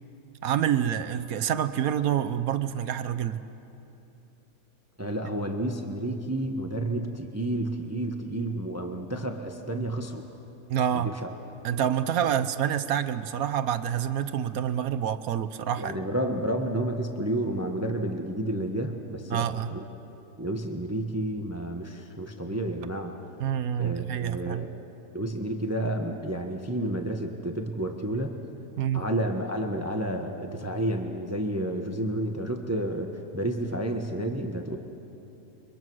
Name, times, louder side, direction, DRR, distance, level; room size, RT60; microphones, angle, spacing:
voice 1, 0.4-3.4 10.7-11.1 11.6-16.0 19.3-19.7 23.4-24.7 28.8-29.1, right 9 dB, 70° right, 11 dB, 1.2 m, -27 dB
voice 2, 5.0-10.2 10.9-11.1 12.2-12.3 15.8-19.8 20.4-23.1 23.8-24.7 25.1-28.4 28.9-34.8, right 1 dB, 10° right, 4 dB, 1.1 m, -30 dB
29.5 x 23.5 x 6.3 m, 2.9 s
omnidirectional pair, 1.6 m